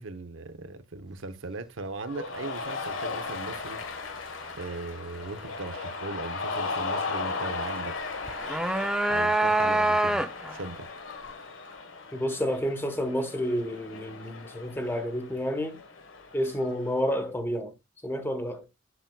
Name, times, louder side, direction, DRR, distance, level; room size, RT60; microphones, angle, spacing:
voice 1, 0.0-3.8 4.6-8.0 9.1-10.9, right 3 dB, 80° right, 0.8 m, -38 dB
Cheering, 2.1-16.9, left 4 dB, 90° left, 1.3 m, -37 dB
sound 1, 8.3-10.6, right 1 dB, 5° right, 0.4 m, -25 dB
voice 2, 12.1-15.8 16.3-17.7 18.0-18.6, equal, 10° left, 1.1 m, -30 dB
8.1 x 7.4 x 2.3 m
head